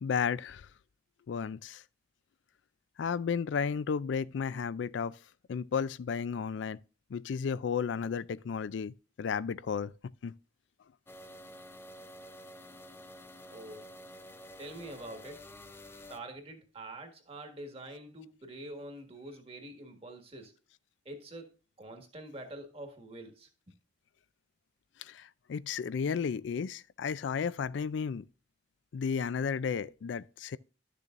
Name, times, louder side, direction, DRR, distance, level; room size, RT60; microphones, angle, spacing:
voice 1, 0.0-0.7 1.3-1.8 3.0-5.2 5.5-6.8 7.1-9.9 10.2-10.3 25.0-28.2 28.9-30.6, left 6 dB, 70° left, 0.4 m, -33 dB
sound 1, 11.1-16.2, left 1 dB, 15° left, 0.6 m, -50 dB
voice 2, 13.5-13.9 14.6-15.5 16.1-20.5 21.0-21.5 21.8-23.7, right 1 dB, 30° right, 1.6 m, -46 dB
11.5 x 6.8 x 2.5 m
head